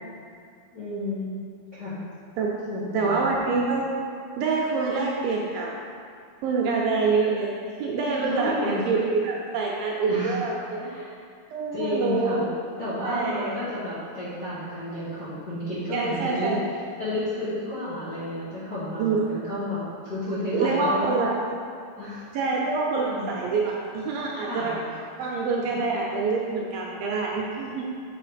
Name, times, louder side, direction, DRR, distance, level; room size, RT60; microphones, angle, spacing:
voice 1, 0.7-1.3 1.7-2.0 2.6-3.2 8.2-8.8 10.1-10.4 10.8-11.1 11.7-12.5 12.8-16.6 17.0-21.1 22.0-22.3 23.0-23.3 24.4-24.9 25.7-25.8, left 1 dB, 35° left, -13 dB, 1.9 m, -31 dB
voice 2, 2.9-3.9 4.4-5.7 6.4-7.5 7.8-11.1 11.5-12.5 13.0-13.5 15.9-16.6 19.0-19.2 20.5-21.3 22.3-24.8 25.2-27.8, right 4 dB, 75° right, -2 dB, 2.3 m, -26 dB
7.0 x 5.5 x 5.0 m, 2.3 s
omnidirectional pair, 4.5 m